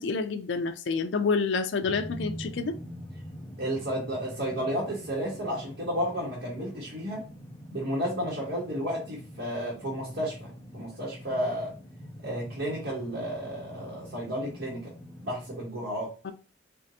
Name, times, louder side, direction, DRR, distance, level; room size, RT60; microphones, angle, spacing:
voice 1, 0.0-2.8 16.2-16.3, left 4 dB, 75° left, 0.5 m, -28 dB
sound 1, 1.8-15.6, equal, 15° left, 0.6 m, -44 dB
voice 2, 3.6-7.2 7.7-11.7 12.2-14.9 15.2-16.1, equal, 70° right, 1.4 m, -32 dB
4.5 x 2.5 x 2.7 m
head